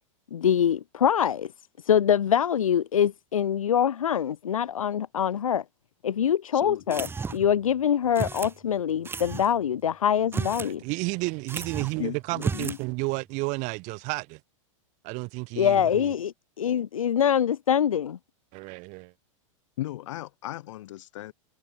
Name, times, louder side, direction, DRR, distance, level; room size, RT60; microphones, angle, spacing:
voice 1, 0.3-1.5 1.8-5.6 6.0-7.1 7.3-10.8 15.6-18.2, left 9 dB, 85° left, 1.1 m, -24 dB
sound 1, 6.9-7.6 8.1-8.6 9.0-9.5 10.2-10.7 11.0-11.1 11.5-12.0 12.3-12.8, right 5 dB, 15° right, 1.5 m, -33 dB
voice 2, 10.6-14.4 15.0-16.1 18.5-19.1, right 27 dB, 45° right, 4.2 m, -32 dB
voice 3, 12.0-12.8 19.8-21.3, left 15 dB, 65° left, 3.4 m, -36 dB
hypercardioid pair, 115°, 17 cm